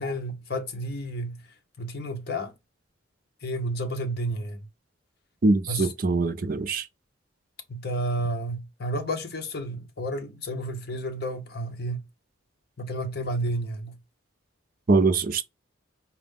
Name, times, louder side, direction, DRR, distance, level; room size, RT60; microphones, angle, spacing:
voice 1, 0.0-1.4 1.8-2.5 3.4-4.7 5.7-5.9 7.7-12.1 12.8-14.0, right 1 dB, 50° left, 0.7 m, -31 dB
voice 2, 5.4-6.8 14.9-15.4, right 3 dB, 45° right, 0.4 m, -22 dB
4.4 x 2.0 x 3.5 m
head